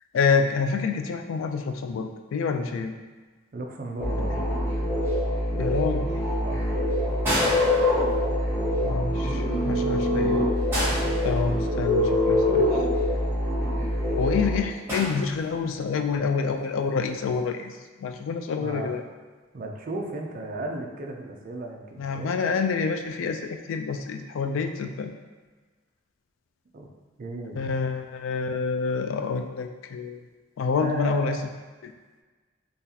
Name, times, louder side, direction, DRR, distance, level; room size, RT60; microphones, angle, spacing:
voice 1, 0.1-2.9 5.6-6.1 8.8-10.4 11.2-12.8 14.2-19.0 22.0-25.1 27.6-30.2 30.6-31.4 31.8-31.9, left 5 dB, 70° left, 6 dB, 0.3 m, -27 dB
voice 2, 3.5-4.4 6.4-6.7 18.6-18.9 19.5-22.3 26.7-26.9 27.2-27.8 30.8-31.5, right 2 dB, 45° right, 1 dB, 0.4 m, -35 dB
sound 1, 4.0-14.6, left 1 dB, 10° left, 0.6 m, -24 dB
sound 2, 7.2-8.5 10.7-11.9 14.9-15.8 17.1-17.3, equal, 10° right, 1.1 m, -30 dB
3.9 x 2.4 x 2.7 m, 1.4 s
head